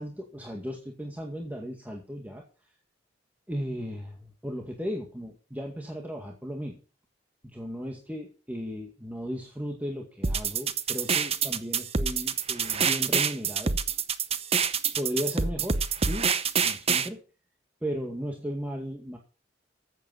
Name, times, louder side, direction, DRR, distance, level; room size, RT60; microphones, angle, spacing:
voice 1, 0.0-2.4 3.5-6.8 7.5-13.8 15.0-16.3 16.6-17.2 17.8-19.2, equal, 10° right, 1 dB, 2.0 m, -35 dB
sound 1, 10.2-17.1, right 6 dB, 35° right, 0.9 m, -26 dB
14.0 x 8.3 x 5.7 m, 0.36 s
head